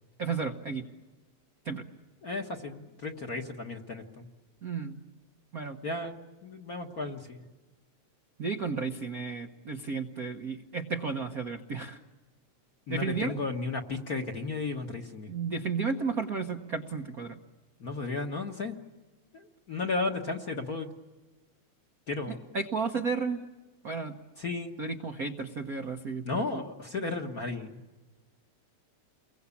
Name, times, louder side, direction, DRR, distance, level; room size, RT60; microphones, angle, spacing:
voice 1, 0.2-0.8 1.6-1.8 4.6-5.0 5.5-5.8 8.4-12.0 12.9-13.3 15.3-17.4 22.5-23.4 23.8-24.2 24.8-26.2, right 5 dB, 55° right, 5 dB, 1.0 m, -33 dB
voice 2, 2.2-4.3 5.8-7.4 12.9-15.3 17.8-18.8 19.3-20.9 22.1-22.4 24.4-24.7 26.2-28.0, left 3 dB, 40° left, 3 dB, 1.4 m, -34 dB
30.0 x 22.5 x 8.5 m, 1.2 s
omnidirectional pair, 3.3 m